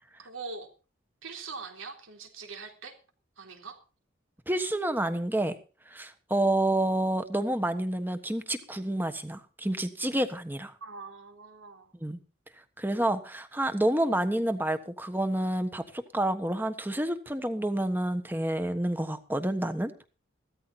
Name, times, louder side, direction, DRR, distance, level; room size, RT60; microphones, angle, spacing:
voice 1, 0.2-0.7 1.2-3.0 3.4-3.8 10.8-11.9, right 4 dB, 85° right, 3.6 m, -42 dB
voice 2, 4.5-5.5 5.9-10.7 12.0-12.2 12.8-19.9, right 1 dB, 10° right, 1.3 m, -29 dB
16.0 x 13.5 x 4.3 m
head